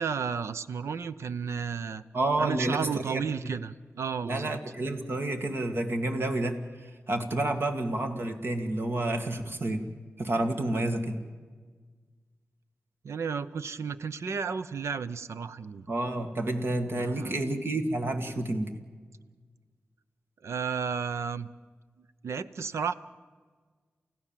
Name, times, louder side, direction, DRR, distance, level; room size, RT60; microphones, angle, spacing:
voice 1, 0.0-2.0 2.4-4.5 13.0-15.9 16.9-17.4 20.4-21.5 22.2-22.9, right 6 dB, 85° right, 14 dB, 0.7 m, -33 dB
voice 2, 2.1-3.5 4.2-9.9 10.2-11.2 15.9-18.7, right 2 dB, 55° right, 6 dB, 2.2 m, -30 dB
29.0 x 16.0 x 7.5 m, 1.5 s
wide cardioid pair, 70°, 5 cm